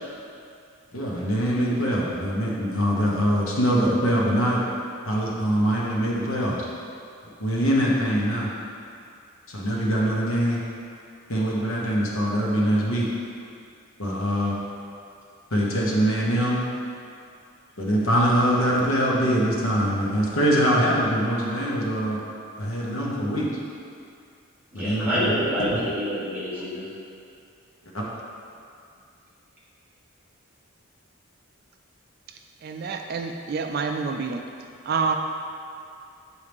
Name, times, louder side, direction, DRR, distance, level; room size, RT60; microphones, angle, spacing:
voice 1, 0.9-4.6 5.0-6.6 7.4-8.5 9.5-10.6 11.3-13.1 14.0-14.5 15.5-16.6 17.8-22.2 22.6-23.5 24.7-25.3 25.7-25.8 27.9-28.0, equal, 75° left, -4 dB, 1.2 m, -23 dB
voice 2, 24.7-26.9, equal, 10° right, -11 dB, 1.6 m, -27 dB
voice 3, 32.6-34.4 34.8-35.1, right 5 dB, 45° right, 4 dB, 0.3 m, -27 dB
8.1 x 4.7 x 3.5 m, 2.4 s
head